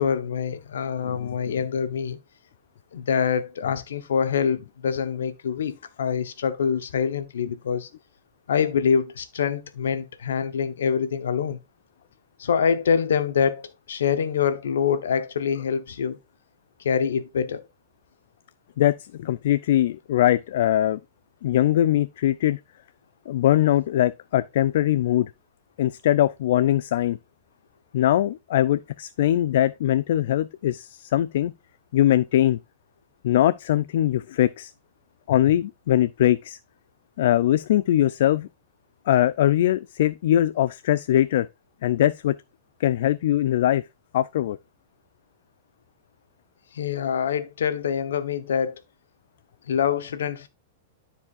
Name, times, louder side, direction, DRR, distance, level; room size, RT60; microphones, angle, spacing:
voice 1, 0.0-2.2 2.9-7.9 8.5-11.6 12.4-16.2 16.8-17.6 46.7-48.8 49.7-50.5, left 7 dB, 85° left, 1.1 m, -25 dB
voice 2, 1.0-1.5 18.8-21.0 21.4-22.6 23.3-25.3 25.8-27.2 27.9-31.5 31.9-32.6 33.2-34.7 35.3-36.6 37.2-38.5 39.1-41.5 41.8-42.4 42.8-43.8 44.1-44.6, left 12 dB, 70° left, 0.3 m, -21 dB
13.0 x 4.7 x 2.5 m
hypercardioid pair, 130°, 0 cm